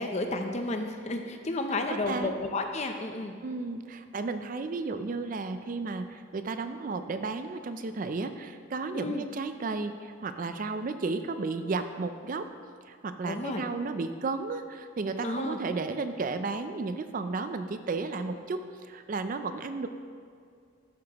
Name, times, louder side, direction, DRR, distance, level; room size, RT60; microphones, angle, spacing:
voice 1, 0.0-3.3 8.9-9.3 13.2-13.6 15.2-15.6, left 2 dB, 35° left, 5 dB, 0.6 m, -32 dB
voice 2, 1.9-2.4 3.4-12.5 12.9-19.9, right 3 dB, 40° right, 9 dB, 0.4 m, -33 dB
12.5 x 7.5 x 3.0 m, 2.2 s
head